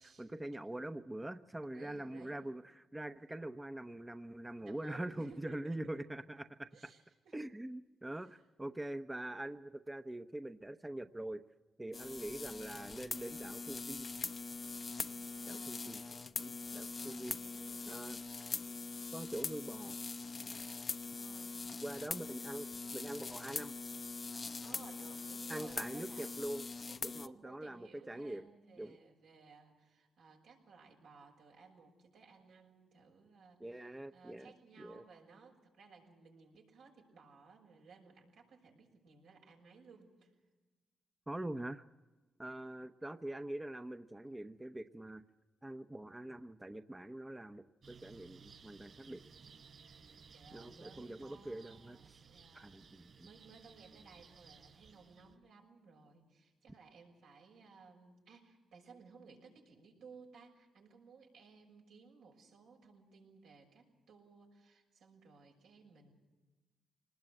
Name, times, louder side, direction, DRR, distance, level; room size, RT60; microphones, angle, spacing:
voice 1, 0.0-6.7 7.3-11.4 11.8-14.1 15.5-16.0 16.4-17.4 17.9-18.2 19.1-20.0 21.8-23.7 25.5-26.7 27.0-28.4 28.8-29.0 33.6-34.5 34.8-35.0 41.3-41.8 42.4-45.2 45.6-49.2 50.5-52.2 52.5-53.3, right 1 dB, 15° right, 8 dB, 0.9 m, -44 dB
voice 2, 1.7-2.4 4.6-5.8 6.7-7.4 8.3-8.4 15.3-15.9 16.9-18.0 21.0-21.9 24.6-26.4 26.9-40.3 42.6-42.7 49.7-66.1, right 5 dB, 85° right, 0 dB, 6.4 m, -59 dB
sound 1, 11.9-27.3, left 4 dB, 45° left, 0.8 m, -43 dB
sound 2, 47.8-55.3, right 6 dB, 55° right, 5.3 m, -59 dB
25.5 x 20.0 x 7.8 m, 1.2 s
cardioid pair, 65°, 0 cm